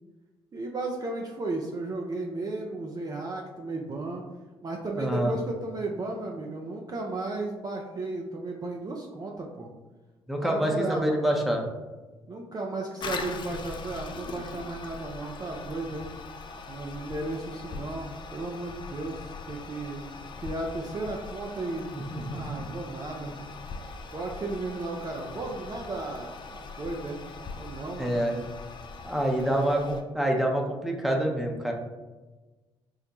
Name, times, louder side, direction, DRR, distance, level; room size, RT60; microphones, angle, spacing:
voice 1, 0.5-4.2 4.6-9.7 10.4-11.4 12.3-16.1 16.7-20.0 20.4-21.9 22.3-23.4 24.1-27.2 27.6-28.1 29.4-29.7, right 2 dB, 30° right, 0 dB, 0.5 m, -34 dB
voice 2, 5.0-5.3 10.3-11.6 21.9-22.4 28.0-28.4 29.0-31.7, right 1 dB, ahead, 0 dB, 0.7 m, -27 dB
Toilet flush, 13.0-30.0, left 4 dB, 40° left, 0.4 m, -41 dB
3.8 x 2.1 x 2.9 m, 1.2 s
hypercardioid pair, 50°, 12 cm